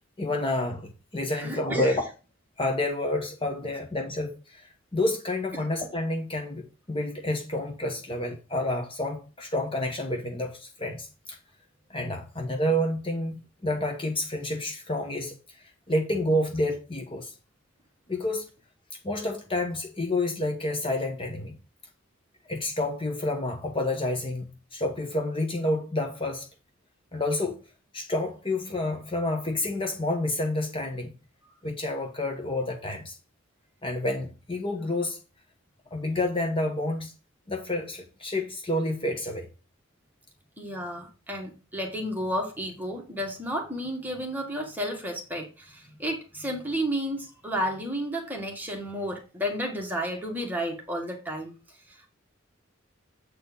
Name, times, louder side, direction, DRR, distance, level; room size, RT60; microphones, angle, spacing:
voice 1, 0.2-2.0 2.6-11.4 11.9-17.3 18.1-18.5 19.0-21.6 22.5-26.5 27.1-27.6 27.9-31.1 31.6-33.2 33.8-35.2 35.9-37.1 37.5-39.5, left 1 dB, 25° left, 1.1 m, -29 dB
voice 2, 1.3-1.9 5.5-5.6 31.4-31.5 40.6-51.5, equal, 10° right, 1.7 m, -32 dB
8.1 x 4.3 x 5.3 m
head